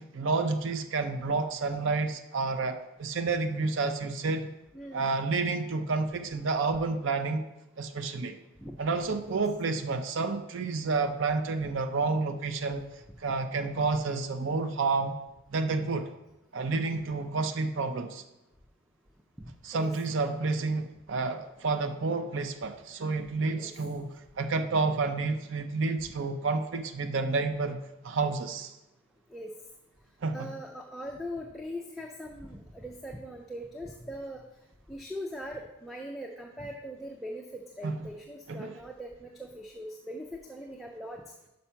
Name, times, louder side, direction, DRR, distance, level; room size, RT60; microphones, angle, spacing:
voice 1, 0.0-4.5 4.9-7.4 7.8-8.4 8.8-15.1 15.5-16.1 16.5-18.2 19.6-24.1 24.4-27.8 28.0-28.8 30.2-30.5 37.8-38.1 38.5-38.8, right 3 dB, 55° right, 8 dB, 0.5 m, -30 dB
voice 2, 4.7-5.1 8.6-8.8 9.3-9.4 11.6-11.7 19.4-19.9 23.5-23.7 29.3-29.5 30.3-34.4 34.9-41.2, equal, ahead, 1 dB, 0.4 m, -41 dB
5.6 x 5.2 x 5.6 m, 0.94 s
head